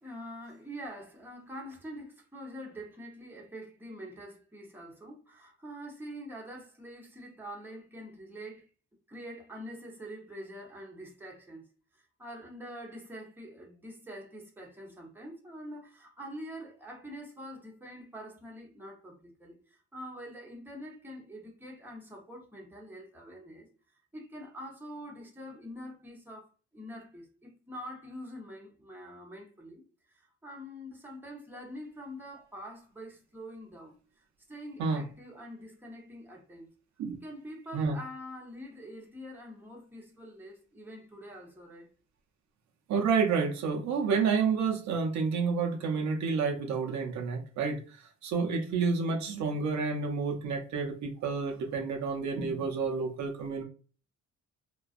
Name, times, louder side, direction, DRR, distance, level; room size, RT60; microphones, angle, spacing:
voice 1, 0.0-8.7 9.1-11.7 11.9-23.7 24.1-36.7 37.2-41.9, equal, 5° right, 0.9 m, -45 dB
voice 2, 42.9-47.8 48.2-53.6, right 5 dB, 70° right, 0.6 m, -29 dB
2.4 x 2.2 x 2.4 m
cardioid pair, 90°, 30 cm